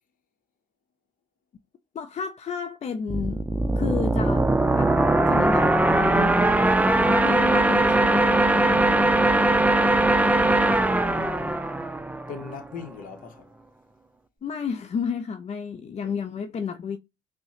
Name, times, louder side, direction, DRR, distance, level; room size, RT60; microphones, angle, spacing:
voice 1, 1.9-3.4 3.8-4.9 5.2-6.6 7.0-9.2 14.4-17.0, left 6 dB, 45° left, 0.5 m, -32 dB
sound 1, 3.1-12.6, right 2 dB, 10° right, 0.5 m, -20 dB
voice 2, 10.4-11.6 12.3-13.5 16.0-16.1, left 6 dB, 60° left, 0.8 m, -41 dB
5.3 x 2.1 x 2.9 m
hypercardioid pair, 50°, 16 cm